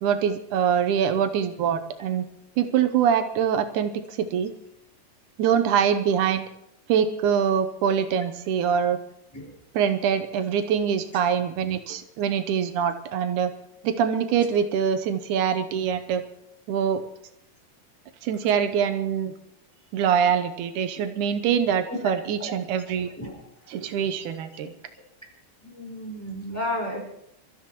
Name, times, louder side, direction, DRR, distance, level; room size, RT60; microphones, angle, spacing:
voice 1, 0.0-2.3 2.6-4.5 5.4-6.5 6.9-9.0 9.7-13.5 13.8-16.2 16.7-17.0 18.2-19.3 19.9-23.1 23.7-24.7, right 8 dB, 80° right, 9 dB, 2.3 m, -24 dB
voice 2, 25.6-27.0, left 1 dB, 5° left, -2 dB, 4.4 m, -32 dB
27.0 x 13.5 x 3.0 m, 0.78 s
omnidirectional pair, 3.6 m